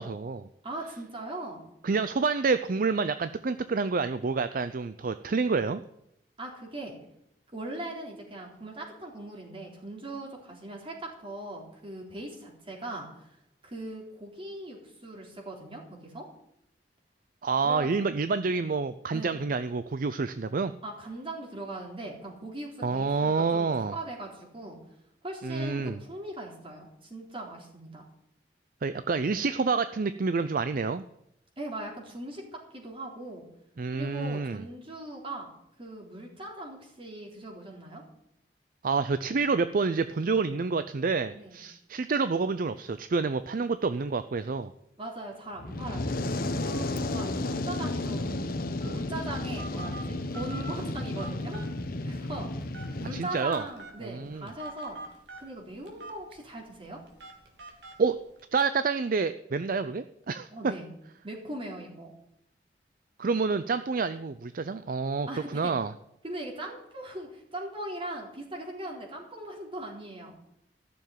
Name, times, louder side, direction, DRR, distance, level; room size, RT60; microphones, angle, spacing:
voice 1, 0.0-0.5 1.8-5.8 17.4-20.7 22.8-24.0 25.4-26.0 28.8-31.0 33.8-34.6 38.8-44.7 53.1-53.7 54.0-54.5 58.0-58.2 58.5-60.7 63.2-65.9, right 4 dB, 50° right, 12 dB, 0.5 m, -28 dB
voice 2, 0.6-1.6 6.4-6.9 7.5-13.4 13.6-16.3 17.6-17.9 19.1-19.4 20.8-24.8 25.2-28.1 31.6-33.5 33.9-35.5 35.8-38.0 41.3-41.6 45.0-48.4 48.8-51.6 52.0-55.0 55.4-57.0 60.5-60.9 61.2-62.1 65.3-65.7 66.2-70.4, right 1 dB, 30° right, -1 dB, 3.7 m, -40 dB
Fire, 45.6-53.2, left 2 dB, 55° left, 1.1 m, -32 dB
Telephone, 48.8-58.6, right 2 dB, 80° right, 3.0 m, -46 dB
14.0 x 7.0 x 9.2 m, 0.78 s
head